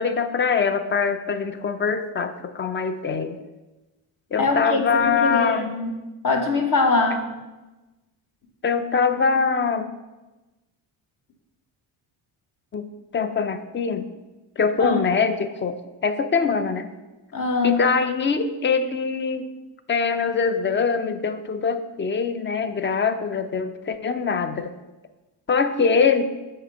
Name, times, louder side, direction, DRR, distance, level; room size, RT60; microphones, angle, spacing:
voice 1, 0.0-3.4 4.3-5.7 8.6-9.9 12.7-12.9 13.1-14.1 14.6-15.8 16.0-16.9 17.6-19.5 19.9-24.7 25.5-26.2, left 5 dB, 25° left, 11 dB, 0.5 m, -23 dB
voice 2, 4.4-5.9 6.2-7.2 14.8-15.0 17.3-17.8, left 3 dB, 40° left, 4 dB, 1.2 m, -22 dB
7.3 x 3.0 x 5.2 m, 1.1 s
supercardioid pair, 60°, 48 cm